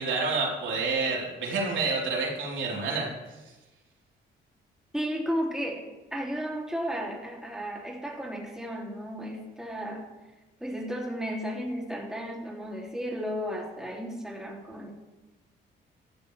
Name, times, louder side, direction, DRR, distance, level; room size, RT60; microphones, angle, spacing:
voice 1, 0.0-3.1, right 3 dB, 70° right, -3 dB, 3.9 m, -28 dB
voice 2, 4.9-10.1 10.6-14.9, equal, 5° right, -2 dB, 2.8 m, -34 dB
15.0 x 13.0 x 3.4 m, 1.1 s
cardioid pair, 90°, 20 cm